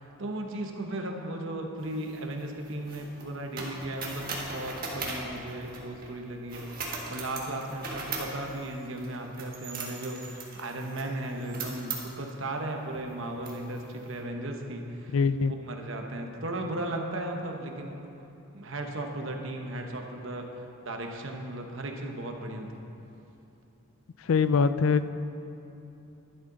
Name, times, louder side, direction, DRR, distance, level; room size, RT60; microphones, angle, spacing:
voice 1, 0.0-18.0 18.5-20.4 20.8-22.8, right 1 dB, 60° right, 2 dB, 1.0 m, -36 dB
sound 1, 1.8-6.1 6.5-12.3 12.9-13.1 13.4-14.1, right 3 dB, 40° right, 1.5 m, -39 dB
voice 2, 15.1-15.5 24.3-25.1, left 5 dB, 65° left, 13 dB, 0.4 m, -23 dB
11.5 x 10.5 x 3.9 m, 2.9 s
head